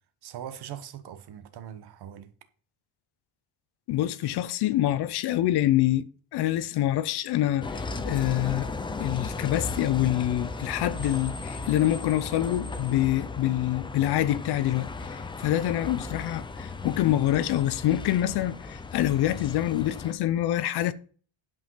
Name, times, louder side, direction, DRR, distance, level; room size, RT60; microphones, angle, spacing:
voice 1, 0.2-2.3, right 10 dB, 55° right, 1.2 m, -41 dB
voice 2, 3.9-8.7 9.0-20.9, left 13 dB, 55° left, 0.7 m, -26 dB
Bus, 7.6-20.1, left 3 dB, 10° left, 0.4 m, -36 dB
11.0 x 5.3 x 5.6 m
cardioid pair, 180°, 46 cm